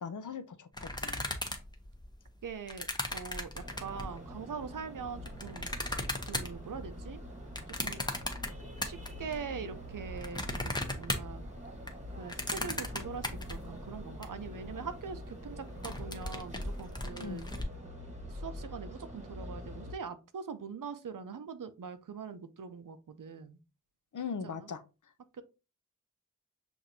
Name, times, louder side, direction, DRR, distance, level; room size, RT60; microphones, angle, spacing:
voice 1, 0.0-1.3 17.2-17.4 24.1-24.8, left 6 dB, 70° left, 0.5 m, -40 dB
sound 1, 0.7-4.2 4.8-9.4 9.7-14.3 14.6-14.7 14.9-15.2 15.6-17.6, left 1 dB, 15° left, 0.7 m, -37 dB
voice 2, 2.4-5.7 6.3-7.2 7.7-8.0 8.8-11.5 12.2-17.5 18.3-23.6 24.4-24.7 25.3-25.4, right 6 dB, 85° right, 0.5 m, -43 dB
sound 2, 3.6-19.9, equal, 20° right, 1.2 m, -45 dB
5.9 x 2.6 x 2.6 m
wide cardioid pair, 50°, 32 cm